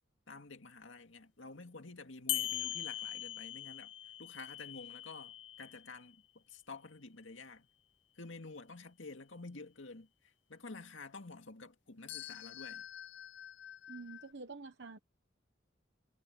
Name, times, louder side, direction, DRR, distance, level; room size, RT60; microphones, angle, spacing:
voice 1, 0.3-3.9 4.2-7.7 8.2-12.9, left 3 dB, 80° left, 2.2 m, -50 dB
sound 1, 2.3-6.1 12.1-14.3, left 14 dB, 65° left, 0.6 m, -42 dB
voice 2, 13.9-15.0, right 3 dB, 60° right, 1.0 m, -47 dB
head